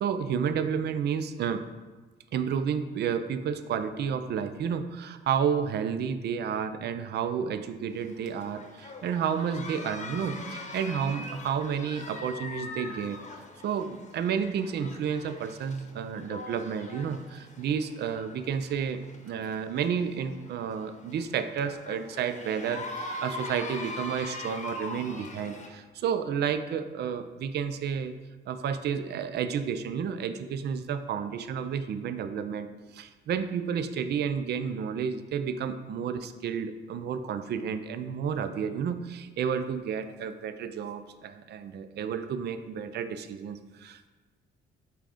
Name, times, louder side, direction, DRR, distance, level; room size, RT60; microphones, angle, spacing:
voice 1, 0.0-1.6 2.3-13.2 13.6-28.1 28.5-32.7 32.9-44.1, right 7 dB, 55° right, 10 dB, 0.4 m, -31 dB
sound 1, 7.9-25.7, left 2 dB, 35° left, 0.9 m, -42 dB
5.6 x 3.7 x 4.9 m, 1.3 s
cardioid pair, 90°, 20 cm